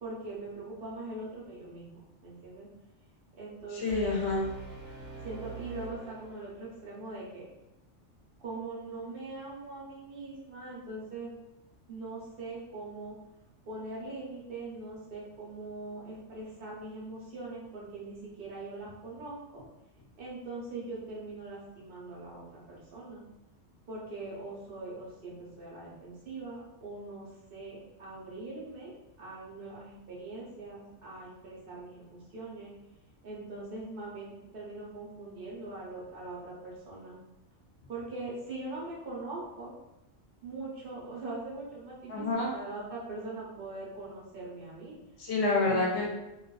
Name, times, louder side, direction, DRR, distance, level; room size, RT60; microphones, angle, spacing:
voice 1, 0.0-2.7 3.4-4.3 5.2-7.5 8.4-11.3 11.9-13.2 13.7-19.6 20.2-23.2 23.9-28.9 29.2-32.7 33.2-37.2 37.9-39.7 40.4-45.0 45.7-45.9, right 2 dB, 50° right, -6 dB, 0.9 m, -42 dB
voice 2, 3.7-4.5 42.1-42.5 45.2-46.1, left 3 dB, 65° left, -2 dB, 0.8 m, -28 dB
Brass instrument, 3.9-7.0, right 4 dB, 80° right, 1.0 m, -44 dB
2.5 x 2.3 x 2.3 m, 0.91 s
omnidirectional pair, 1.3 m